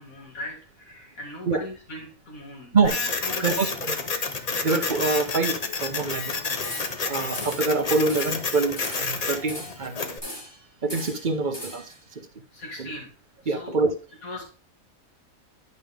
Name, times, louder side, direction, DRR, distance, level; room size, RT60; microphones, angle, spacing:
voice 1, 0.0-2.9 3.2-3.7 10.9-11.1 12.5-13.1 13.4-13.8 14.2-14.4, left 1 dB, 75° left, 0 dB, 2.8 m, -39 dB
Printer, 2.8-10.2, left 4 dB, 35° left, 0.7 m, -30 dB
voice 2, 3.4-4.0 4.6-6.4 7.0-10.2 10.8-12.3 12.8-12.9 13.5-13.9, right 3 dB, 40° right, 7 dB, 1.0 m, -25 dB
sound 1, 6.6-7.1 7.3-7.7 8.1-8.4 8.8-9.9 10.2-10.6 10.9-12.0, equal, 15° left, 2.3 m, -39 dB
11.0 x 5.4 x 3.6 m, 0.35 s
omnidirectional pair, 1.5 m